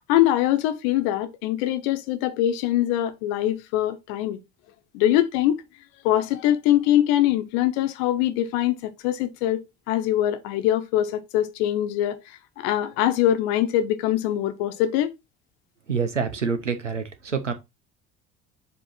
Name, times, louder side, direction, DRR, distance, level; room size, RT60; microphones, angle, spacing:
voice 1, 0.1-4.4 4.9-5.6 6.0-12.2 12.6-15.1, left 12 dB, 60° left, 1.1 m, -23 dB
voice 2, 15.9-17.5, right 5 dB, 90° right, 0.9 m, -27 dB
7.4 x 3.1 x 4.3 m
figure-of-eight pair, 60°, 35 cm